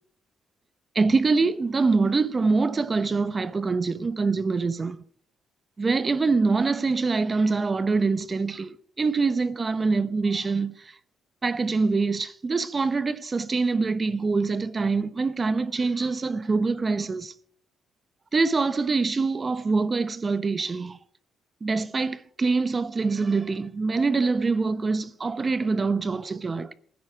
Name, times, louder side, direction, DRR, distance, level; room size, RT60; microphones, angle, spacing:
voice 1, 0.9-5.0 5.8-10.9 11.4-17.3 18.3-21.0 21.6-26.7, right 4 dB, 30° right, 0.9 m, -24 dB
16.5 x 9.7 x 4.9 m
cardioid pair, 90°, 0 cm